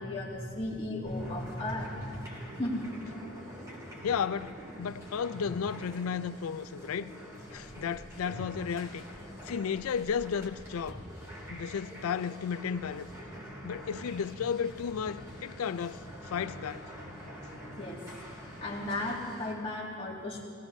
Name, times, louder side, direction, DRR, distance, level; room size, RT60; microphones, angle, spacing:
voice 1, 0.0-2.9 3.8-3.9 17.8-18.1 18.6-20.4, left 1 dB, 25° left, 2.1 m, -35 dB
sound 1, 1.0-19.5, equal, 15° right, 2.6 m, -46 dB
voice 2, 4.0-7.1 7.5-9.0 9.4-11.0 11.5-13.1 13.6-16.9, left 7 dB, 85° left, 0.4 m, -33 dB
21.5 x 17.0 x 2.7 m
head